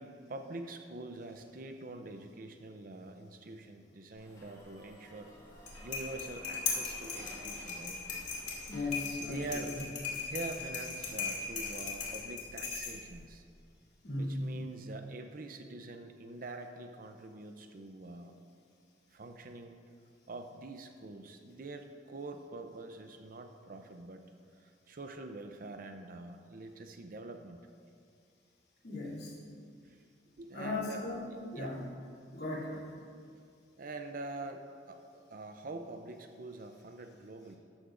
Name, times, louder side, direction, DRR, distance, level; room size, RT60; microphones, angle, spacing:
voice 1, 0.0-5.4 5.8-8.0 9.2-9.7 10.3-13.4 14.2-18.3 19.1-19.7 20.3-24.2 24.6-27.6 29.8-30.0 30.4-31.0 31.5-31.8 33.8-34.6 34.9-37.5, right 2 dB, 50° right, 6 dB, 0.6 m, -45 dB
sound 1, 4.1-9.9, equal, 20° left, 3.0 m, -54 dB
sound 2, 5.5-13.2, left 5 dB, 45° left, 2.4 m, -38 dB
voice 2, 8.7-9.6 14.0-14.5 28.8-29.4 30.5-31.2 31.5-31.8 32.3-32.9, left 2 dB, 65° left, -6 dB, 2.8 m, -37 dB
13.5 x 12.5 x 2.5 m, 2.3 s
head